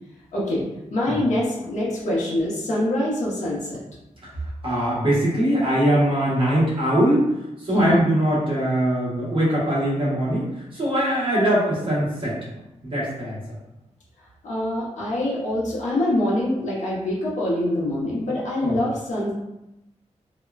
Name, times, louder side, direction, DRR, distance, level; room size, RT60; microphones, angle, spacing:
voice 1, 0.3-0.6 0.9-3.8 7.7-8.0 14.4-19.3, left 1 dB, 75° left, -6 dB, 0.8 m, -24 dB
voice 2, 4.6-7.2 7.6-12.4 12.8-13.4 18.6-18.8, right 1 dB, 45° right, -8 dB, 1.1 m, -22 dB
2.9 x 2.1 x 2.3 m, 0.93 s
wide cardioid pair, 165°, 12 cm